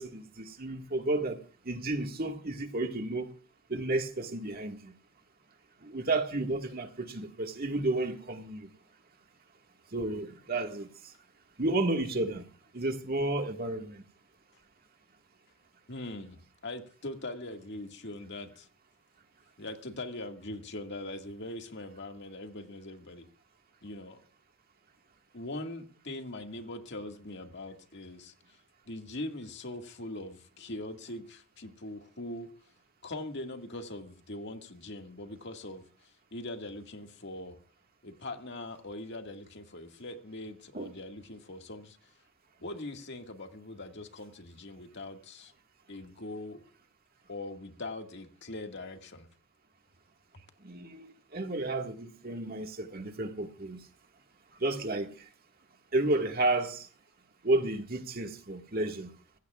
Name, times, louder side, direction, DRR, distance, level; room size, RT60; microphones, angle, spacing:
voice 1, 0.0-3.3 3.7-4.9 5.8-8.7 9.9-10.9 11.6-12.4 12.7-14.0 40.7-40.9 50.6-53.8 54.6-55.1 55.9-56.9 57.4-59.1, right 2 dB, 45° right, 1.8 m, -32 dB
voice 2, 15.9-18.7 19.6-23.3 23.8-24.2 25.3-28.6 28.9-32.5 33.0-35.8 36.3-37.6 38.0-42.0 42.6-45.5 45.9-46.6 47.3-49.3, left 2 dB, 60° left, 2.0 m, -41 dB
25.5 x 16.0 x 2.4 m
head